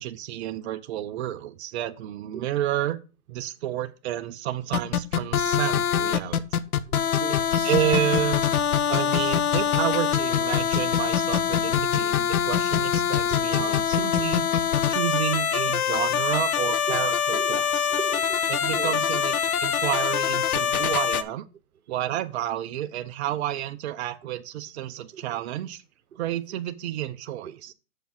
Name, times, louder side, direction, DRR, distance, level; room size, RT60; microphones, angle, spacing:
voice 1, 0.0-3.0 3.3-6.4 7.6-8.5 8.9-14.5 14.9-17.9 18.5-21.4 21.9-25.8 26.2-27.7, right 12 dB, 50° right, 0.8 m, -30 dB
sound 1, 4.7-21.2, left 8 dB, 85° left, 0.9 m, -24 dB
voice 2, 7.2-7.7 13.3-13.7 16.9-17.0 17.3-17.6 17.9-18.4 18.7-19.0 20.8-20.9 25.1-25.2 27.4-27.7, right 8 dB, 85° right, 0.9 m, -38 dB
6.9 x 5.1 x 6.0 m
hypercardioid pair, 135°, 43 cm